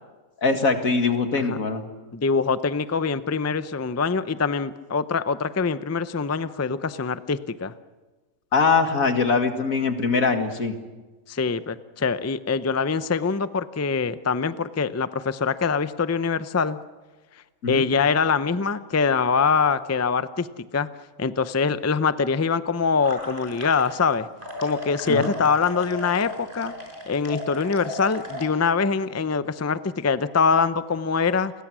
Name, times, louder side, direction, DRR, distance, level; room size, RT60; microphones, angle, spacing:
voice 1, 0.4-1.9 8.5-10.7 17.6-17.8 25.1-25.3, left 4 dB, 85° left, 6 dB, 2.4 m, -22 dB
voice 2, 2.1-7.7 11.3-16.8 17.7-20.9 21.2-24.3 24.6-26.7 27.1-31.5, left 5 dB, 20° left, 13 dB, 0.4 m, -24 dB
sound 1, 23.0-24.1 24.4-28.4, left 1 dB, 40° right, 5.7 m, -36 dB
29.0 x 22.0 x 6.2 m, 1.3 s
omnidirectional pair, 1.4 m